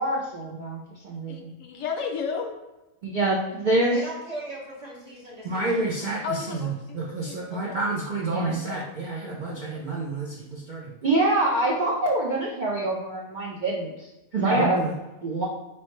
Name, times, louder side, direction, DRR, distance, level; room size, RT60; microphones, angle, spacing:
voice 1, 0.0-1.5 3.0-4.0 5.4-15.5, right 2 dB, 55° right, -3 dB, 0.5 m, -27 dB
voice 2, 1.3-2.5 6.2-7.8 8.6-8.9, left 6 dB, 70° left, 3 dB, 0.9 m, -33 dB
voice 3, 3.8-6.2, right 1 dB, 35° right, -5 dB, 0.9 m, -39 dB
4.3 x 3.1 x 3.0 m, 1.0 s
omnidirectional pair, 1.5 m